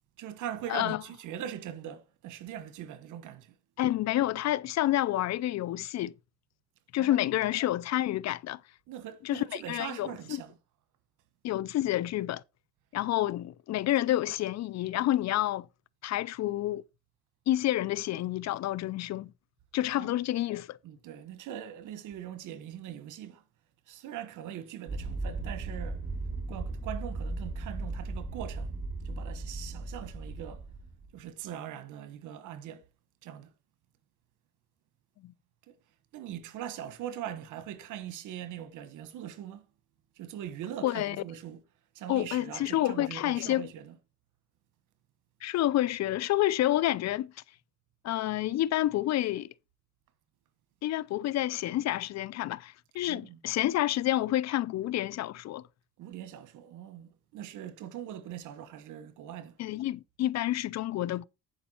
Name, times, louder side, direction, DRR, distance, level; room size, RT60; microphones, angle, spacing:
voice 1, 0.2-3.5 7.0-7.2 8.9-10.5 20.0-20.1 20.8-23.4 23.9-26.0 26.5-28.8 29.0-30.7 31.1-32.8 33.2-33.5 35.7-35.8 36.1-39.6 40.2-41.6 41.9-43.9 53.1-53.4 56.0-59.6, right 10 dB, 90° right, 1.2 m, -41 dB
voice 2, 3.8-6.1 6.9-8.6 9.2-10.4 11.4-12.4 12.9-15.7 16.0-16.8 17.5-19.3 19.7-20.8 35.2-35.3 40.8-41.2 42.1-43.7 45.4-47.3 48.0-49.5 50.8-55.6 59.6-61.3, left 14 dB, 60° left, 0.4 m, -29 dB
sound 1, 24.9-31.1, right 3 dB, 30° right, 3.5 m, -37 dB
10.5 x 5.2 x 4.3 m
cardioid pair, 90°, 30 cm